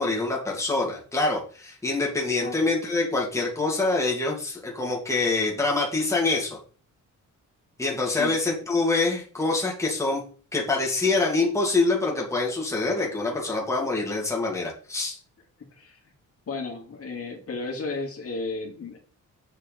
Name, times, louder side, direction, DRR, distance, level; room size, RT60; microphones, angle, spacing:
voice 1, 0.0-6.6 7.8-10.2 10.5-15.2, left 3 dB, 10° left, -3 dB, 2.5 m, -25 dB
voice 2, 8.0-8.3 15.8-16.0 16.5-19.0, left 3 dB, 45° left, 0 dB, 2.7 m, -33 dB
7.7 x 5.4 x 5.4 m, 0.39 s
cardioid pair, 125°, 31 cm